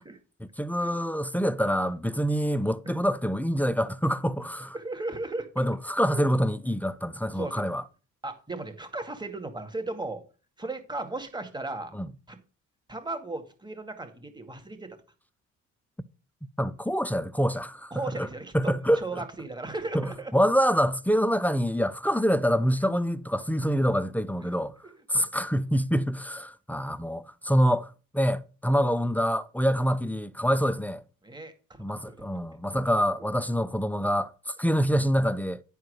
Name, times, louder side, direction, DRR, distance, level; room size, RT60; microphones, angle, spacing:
voice 1, 0.4-4.8 5.6-7.8 11.9-12.1 16.6-17.9 18.2-18.3 18.5-19.2 19.9-24.7 25.1-31.0 31.8-35.6, equal, 5° left, 0.6 m, -26 dB
voice 2, 4.7-5.5 5.9-6.2 7.3-7.6 8.2-10.2 10.6-12.0 12.3-12.4 12.9-15.0 17.9-20.3 25.1-25.3 31.2-31.8 32.1-32.3, right 2 dB, 15° right, 2.2 m, -36 dB
10.5 x 4.6 x 6.5 m
cardioid pair, 90°, 30 cm